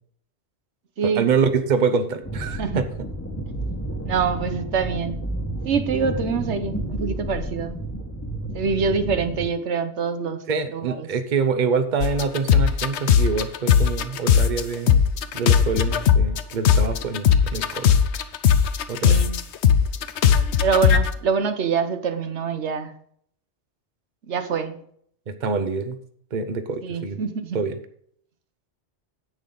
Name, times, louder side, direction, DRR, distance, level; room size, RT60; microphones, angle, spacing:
voice 1, 1.0-2.9 10.5-15.0 15.3-17.9 18.9-19.2 25.3-26.0 26.3-27.2 27.5-27.8, right 5 dB, 45° right, 10 dB, 0.9 m, -25 dB
sound 1, 2.2-9.5, right 1 dB, 15° left, 1.3 m, -31 dB
voice 2, 4.0-5.2 5.6-7.8 8.5-10.4 10.7-11.1 19.0-19.4 20.6-22.9 24.3-24.8 26.8-27.6, right 5 dB, 85° right, 9 dB, 1.2 m, -25 dB
sound 2, 12.0-14.6 14.9-21.1, left 8 dB, 80° left, 1.0 m, -18 dB
10.5 x 8.6 x 3.9 m, 0.64 s
omnidirectional pair, 1.1 m